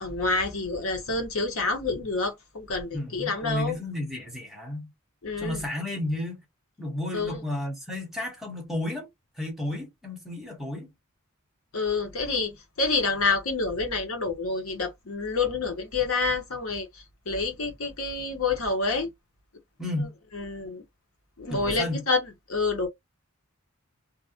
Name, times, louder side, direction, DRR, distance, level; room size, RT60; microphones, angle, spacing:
voice 1, 0.0-3.8 5.2-5.6 7.1-7.4 11.7-12.5 12.8-16.9 17.3-19.1 20.3-20.8 21.4-22.9, left 3 dB, 70° left, 0.8 m, -28 dB
voice 2, 2.9-4.9 5.4-6.4 6.8-9.1 9.4-10.9 19.8-20.1 21.5-22.0, left 1 dB, ahead, 0.9 m, -32 dB
2.4 x 2.0 x 2.8 m
head